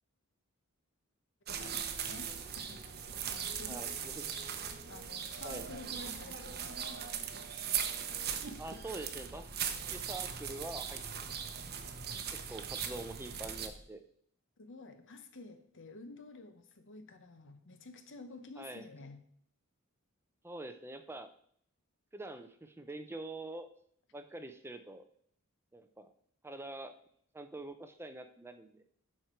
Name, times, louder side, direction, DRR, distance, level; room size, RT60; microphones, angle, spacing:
sound 1, 1.5-13.7, right 7 dB, 45° right, 0.8 m, -39 dB
voice 1, 1.6-4.0 4.3-4.6 4.9-7.1 14.6-19.2, left 3 dB, 60° left, 9 dB, 1.0 m, -51 dB
voice 2, 3.7-4.2 5.4-5.7 8.6-9.5 9.9-11.3 12.3-14.0 18.6-18.8 20.4-21.3 22.1-23.7 24.1-25.0 25.7-26.1 26.4-26.9 27.3-28.8, right 2 dB, 10° right, 8 dB, 0.5 m, -45 dB
sound 2, 8.2-13.8, equal, 25° left, 2.3 m, -54 dB
11.5 x 4.5 x 4.5 m, 0.63 s
head